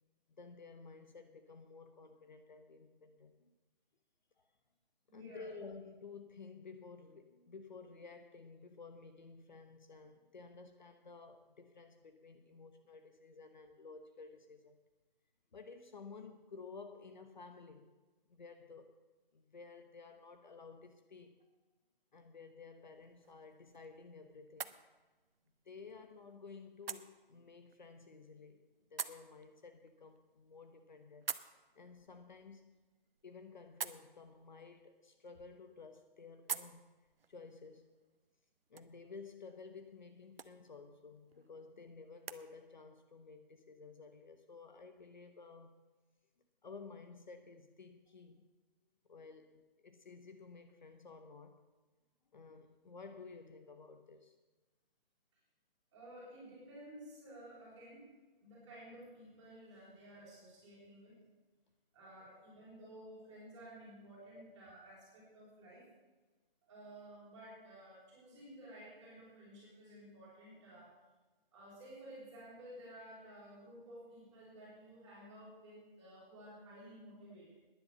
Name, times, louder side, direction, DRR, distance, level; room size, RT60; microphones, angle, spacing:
voice 1, 0.4-3.6 4.4-4.5 5.1-14.8 15.5-17.9 18.3-18.9 19.3-21.4 22.1-24.7 25.6-28.6 28.9-31.3 31.7-32.7 33.2-36.9 37.3-37.9 38.7-45.7 46.6-48.5 49.1-51.6 52.3-54.3 64.3-64.4, left 4 dB, 50° left, 7 dB, 1.0 m, -53 dB
voice 2, 5.1-5.5 55.9-58.1 58.4-61.2 61.9-65.9 66.7-70.9 71.5-77.5, right 1 dB, 10° right, -9 dB, 5.7 m, -54 dB
sound 1, 22.9-42.4, right 6 dB, 75° right, 0.9 m, -50 dB
11.5 x 10.5 x 6.9 m, 1.2 s
hypercardioid pair, 170°, 29 cm